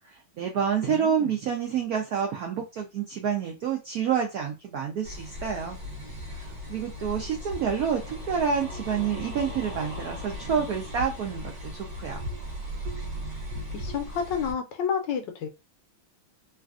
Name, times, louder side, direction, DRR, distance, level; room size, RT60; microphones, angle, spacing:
voice 1, 0.0-5.8 6.3-12.2, right 7 dB, 80° right, 2 dB, 0.8 m, -28 dB
voice 2, 0.9-1.3 13.7-15.5, left 7 dB, 75° left, 6 dB, 1.1 m, -30 dB
sound 1, 5.0-14.5, left 1 dB, 60° right, 1.1 m, -37 dB
3.2 x 2.4 x 2.4 m, 0.26 s
omnidirectional pair, 2.2 m